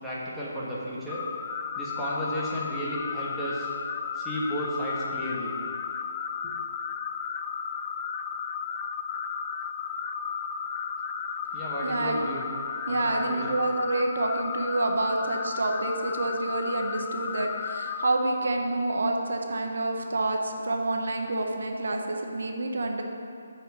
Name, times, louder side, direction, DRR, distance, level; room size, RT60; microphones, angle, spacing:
voice 1, 0.0-1.2 1.7-3.7 4.1-5.5 6.4-6.5 11.5-12.4 12.9-13.6, equal, ahead, -10 dB, 1.3 m, -33 dB
sound 1, 1.1-18.1, left 6 dB, 20° left, 0.3 m, -34 dB
voice 2, 11.8-12.2 12.9-23.0, right 2 dB, 75° right, 3 dB, 1.0 m, -28 dB
7.7 x 4.9 x 6.7 m, 2.6 s
hypercardioid pair, 165°, 0 cm